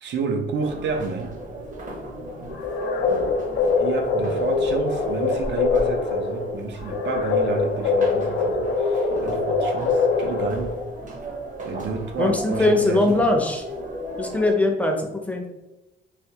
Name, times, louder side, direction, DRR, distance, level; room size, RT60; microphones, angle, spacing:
voice 1, 0.0-1.4 3.7-10.8 11.6-13.3, right 4 dB, 65° right, 4 dB, 0.5 m, -30 dB
sound 1, 0.6-14.5, right 1 dB, 40° right, 0.8 m, -35 dB
sound 2, 2.5-11.0, left 4 dB, 70° left, 0.4 m, -23 dB
voice 2, 12.2-13.6 14.2-15.5, left 2 dB, 5° left, 1 dB, 0.6 m, -21 dB
3.4 x 2.2 x 2.8 m, 0.97 s
cardioid pair, 90°, 20 cm